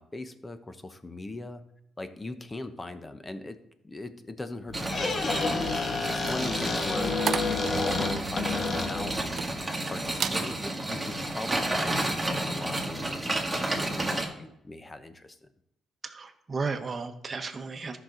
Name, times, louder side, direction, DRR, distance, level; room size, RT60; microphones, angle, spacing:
voice 1, 0.0-1.6 2.0-3.6 3.8-9.4 9.9-15.4, left 2 dB, 20° left, 10 dB, 0.9 m, -40 dB
Squeak, 4.7-9.3, left 4 dB, 50° left, 1.3 m, -30 dB
sound 1, 4.7-14.2, right 1 dB, 10° right, 2.0 m, -31 dB
sound 2, 6.0-9.8 10.1-10.4 10.9-11.2, right 7 dB, 55° right, 0.5 m, -35 dB
voice 2, 16.0-18.0, right 4 dB, 35° right, 6 dB, 1.1 m, -34 dB
13.0 x 5.9 x 3.9 m, 0.79 s
cardioid pair, 90°, 0 cm